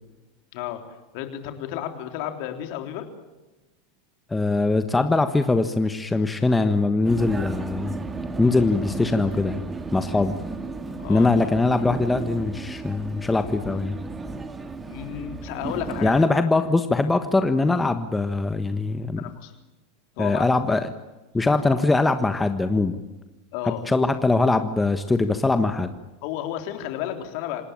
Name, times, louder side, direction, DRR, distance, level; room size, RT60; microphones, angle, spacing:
voice 1, 0.5-0.8 1.1-3.1 10.9-11.3 14.9-16.5 19.2-19.5 20.2-20.6 23.5-23.8 26.2-27.6, left 11 dB, 60° left, 6 dB, 3.7 m, -32 dB
voice 2, 4.3-7.9 8.4-9.6 9.9-10.3 11.1-13.9 16.0-19.2 20.2-20.9 21.3-23.0 23.6-25.9, left 3 dB, 10° left, 9 dB, 1.4 m, -22 dB
Vehicle, 7.0-16.3, right 3 dB, 20° right, 2.4 m, -34 dB
27.5 x 19.0 x 8.9 m, 1.1 s
hypercardioid pair, 95°, 0 cm